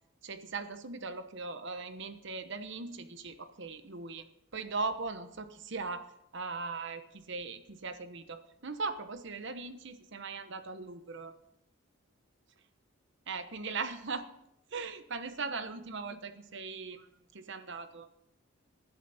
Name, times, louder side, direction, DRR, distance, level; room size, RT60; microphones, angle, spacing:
voice 1, 0.2-4.2 4.5-6.1 6.3-11.3 13.3-14.3 14.7-17.1 17.3-18.1, right 4 dB, 60° right, 10 dB, 1.1 m, -39 dB
19.5 x 11.5 x 4.2 m, 0.77 s
head